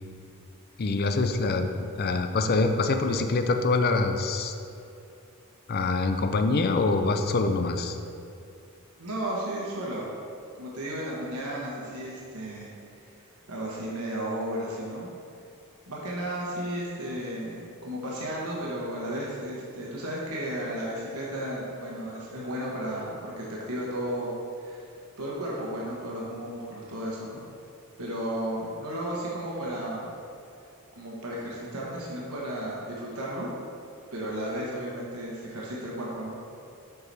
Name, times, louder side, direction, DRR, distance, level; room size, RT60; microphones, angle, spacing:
voice 1, 0.8-1.7 2.0-4.5 5.7-8.0, left 3 dB, 45° left, 7 dB, 0.5 m, -25 dB
voice 2, 9.0-10.1 10.6-12.7 13.0-13.1 13.5-15.1 15.9-24.9 25.2-27.4 28.0-30.1 30.9-33.5 34.1-36.4, right 1 dB, 75° right, -4 dB, 1.2 m, -34 dB
7.9 x 4.7 x 4.1 m, 2.6 s
head